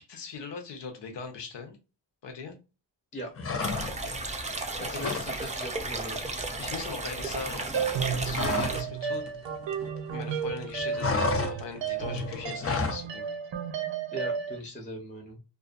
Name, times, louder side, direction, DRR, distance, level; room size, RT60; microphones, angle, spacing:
voice 1, 0.1-1.8 2.2-2.6 3.8-4.2 4.6-5.2 6.6-7.6 8.2-9.2 10.1-13.2, left 5 dB, 75° left, 4 dB, 0.9 m, -40 dB
sound 1, 3.4-4.2 4.5-5.3 5.6-5.8 6.1-8.9 9.1-10.2 10.5-13.1, left 4 dB, 35° left, 0.5 m, -32 dB
sound 2, 3.6-8.8, right 2 dB, 15° right, 0.4 m, -34 dB
voice 2, 4.8-6.2 14.1-15.4, right 1 dB, 15° left, 1 dB, 0.8 m, -39 dB
sound 3, 7.7-14.6, right 7 dB, 85° right, 0.6 m, -33 dB
2.4 x 2.4 x 2.4 m, 0.30 s
wide cardioid pair, 105°, 43 cm